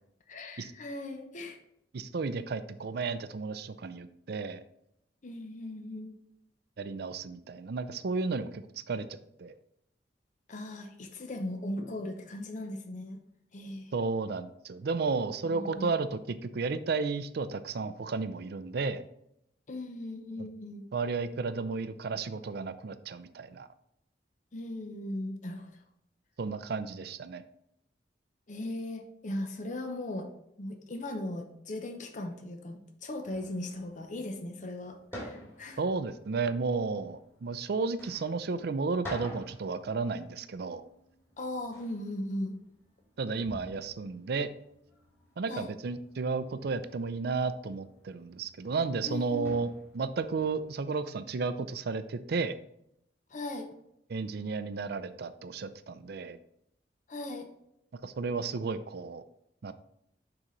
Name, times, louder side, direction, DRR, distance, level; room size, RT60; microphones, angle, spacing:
voice 1, 0.3-1.6 5.2-6.2 10.5-13.2 13.5-13.9 15.4-15.9 19.7-20.9 24.5-25.7 28.5-30.3 30.6-35.8 41.4-42.6 45.5-45.7 49.0-49.5 53.3-53.7 57.1-57.5, left 1 dB, 45° left, 4 dB, 0.7 m, -38 dB
voice 2, 1.9-4.6 6.8-8.6 8.9-9.5 13.9-19.0 20.4-20.5 20.9-23.7 26.4-27.4 35.8-40.8 43.2-44.5 45.4-52.6 54.1-56.4 58.0-59.2 59.6-59.7, right 4 dB, 65° right, 12 dB, 0.5 m, -33 dB
sound 1, 33.2-50.7, equal, 15° left, 2.7 m, -51 dB
9.6 x 3.9 x 3.1 m, 0.77 s
head